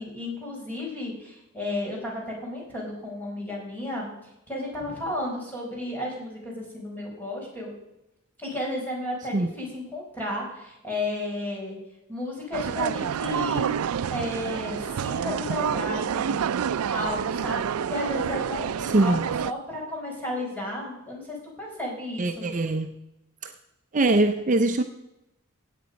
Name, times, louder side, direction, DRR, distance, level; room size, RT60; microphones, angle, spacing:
voice 1, 0.0-4.1 4.5-7.7 8.4-11.8 12.1-13.8 14.1-16.4 16.9-22.5, left 1 dB, 10° left, -3 dB, 4.9 m, -33 dB
sound 1, 12.5-19.5, right 7 dB, 80° right, 0.4 m, -28 dB
voice 2, 18.8-19.2 22.2-22.9 23.4-23.5 23.9-24.8, right 2 dB, 35° right, 7 dB, 0.6 m, -22 dB
17.0 x 8.4 x 5.2 m, 0.90 s
head